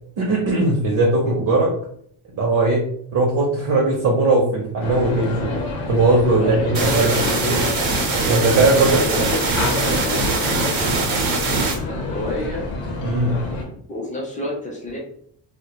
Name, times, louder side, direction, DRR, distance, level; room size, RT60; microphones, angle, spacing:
voice 1, 0.2-1.7 2.3-2.8 3.1-5.5 5.9-7.2 7.4-7.5 8.3-9.0 13.0-13.4, right 2 dB, 40° right, -1 dB, 0.5 m, -19 dB
sound 1, 4.8-13.7, left 3 dB, 70° left, 0.7 m, -28 dB
voice 2, 6.4-7.9 8.9-11.4 11.9-12.7 13.9-15.0, left 1 dB, 15° left, -3 dB, 0.4 m, -29 dB
sound 2, 6.7-11.7, right 3 dB, 70° right, 0.8 m, -22 dB
2.1 x 2.1 x 2.8 m, 0.64 s
cardioid pair, 155°, 48 cm